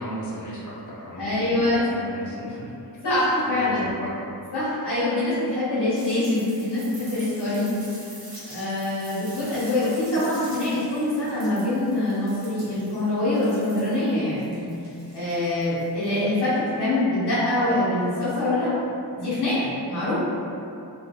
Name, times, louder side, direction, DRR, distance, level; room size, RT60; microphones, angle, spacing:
voice 1, 0.0-2.7 3.5-4.3 9.4-9.5, equal, 45° left, -7 dB, 0.6 m, -35 dB
voice 2, 1.2-1.8 3.0-3.8 4.5-7.7 8.5-14.7 15.1-18.7 19.2-20.2, left 1 dB, 70° left, -12 dB, 1.1 m, -24 dB
sound 1, 5.9-16.3 17.7-17.8, right 1 dB, 55° right, 1.1 m, -45 dB
2.7 x 2.5 x 2.2 m, 2.7 s
wide cardioid pair, 170°, 42 cm